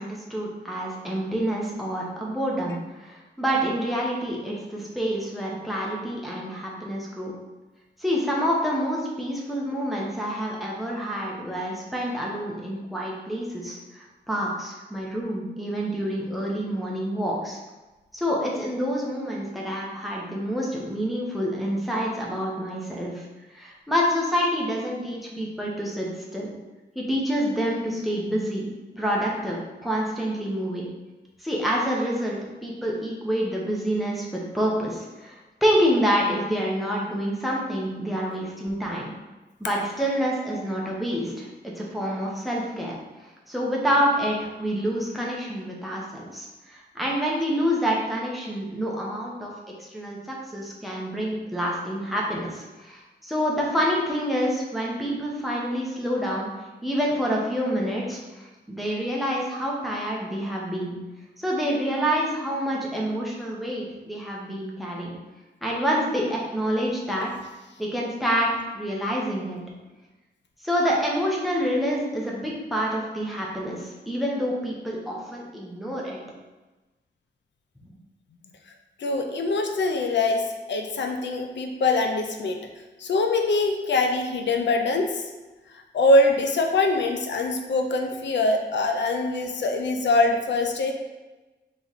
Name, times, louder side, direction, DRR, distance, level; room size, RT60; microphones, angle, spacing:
voice 1, 0.0-7.3 8.0-17.6 18.1-23.2 23.5-26.5 27.0-28.7 29.0-30.9 31.4-39.1 39.6-42.9 43.5-49.5 49.8-56.5 56.8-61.0 61.4-65.1 65.6-67.3 67.8-68.5 68.7-69.6 70.6-76.2 77.8-77.9, equal, ahead, -3 dB, 0.8 m, -27 dB
voice 2, 79.0-82.6 83.0-85.2 85.9-90.9, left 2 dB, 85° left, 4 dB, 0.5 m, -23 dB
3.9 x 3.1 x 4.0 m, 1.1 s
wide cardioid pair, 145°, 18 cm